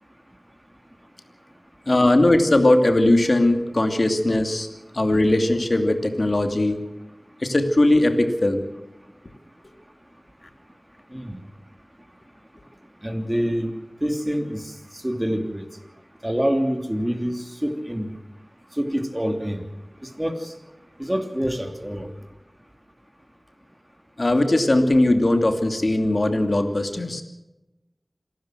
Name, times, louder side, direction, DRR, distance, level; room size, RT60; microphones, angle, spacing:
voice 1, 1.9-4.7 4.9-6.8 7.4-8.6 24.2-27.2, left 1 dB, 60° left, 6 dB, 2.7 m, -19 dB
voice 2, 13.0-13.7 14.0-14.7 15.0-15.7 16.2-18.1 18.8-19.6 20.2-20.5 21.0-22.1, equal, 15° right, 5 dB, 3.0 m, -26 dB
27.0 x 12.5 x 7.7 m, 0.98 s
wide cardioid pair, 40°, 0 cm